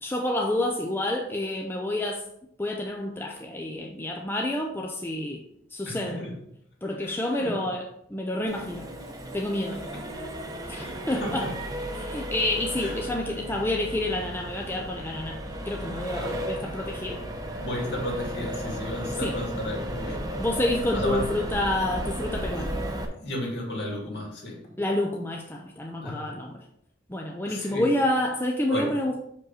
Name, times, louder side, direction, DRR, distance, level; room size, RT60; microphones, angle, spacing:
voice 1, 0.0-2.2 2.6-5.4 5.7-6.2 6.8-8.9 9.3-9.8 10.7-11.5 11.9-17.2 19.2-19.4 20.4-22.7 24.8-26.6 27.1-29.2, left 1 dB, 10° left, 1 dB, 0.5 m, -29 dB
voice 2, 5.9-6.4 7.0-7.7 9.7-10.0 10.8-11.5 12.8-12.9 13.3-13.4 16.2-16.4 17.6-20.4 20.9-21.3 23.2-24.7 26.0-26.4 27.5-27.9 28.7-28.9, left 1 dB, 60° left, -1 dB, 2.3 m, -33 dB
Accelerating revving vroom, 8.5-23.0, right 1 dB, 20° right, 0.9 m, -34 dB
6.2 x 5.3 x 4.1 m, 0.73 s
head